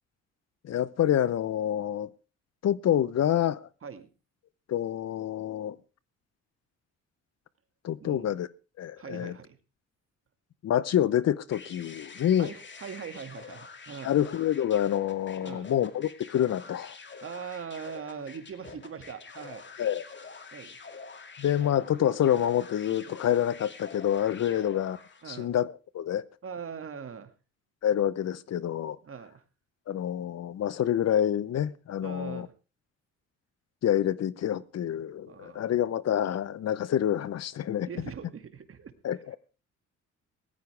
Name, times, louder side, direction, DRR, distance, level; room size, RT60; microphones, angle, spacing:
voice 1, 0.6-2.1 2.6-3.6 4.7-5.8 7.8-8.5 8.8-9.3 10.6-12.5 14.0-17.0 19.8-20.0 21.4-25.0 25.3-26.2 27.8-29.0 29.9-32.5 33.8-37.9 39.0-39.4, left 10 dB, 55° left, 0.8 m, -27 dB
voice 2, 8.0-8.3 9.0-9.6 12.4-14.2 15.4-15.7 17.2-19.7 20.5-20.8 25.2-25.6 26.4-27.3 29.0-29.4 32.0-32.5 35.2-35.7 37.6-39.2, right 6 dB, 45° right, 2.1 m, -41 dB
sound 1, 11.5-25.3, left 5 dB, 40° left, 2.3 m, -47 dB
18.0 x 14.5 x 3.4 m
cardioid pair, 90°, 30 cm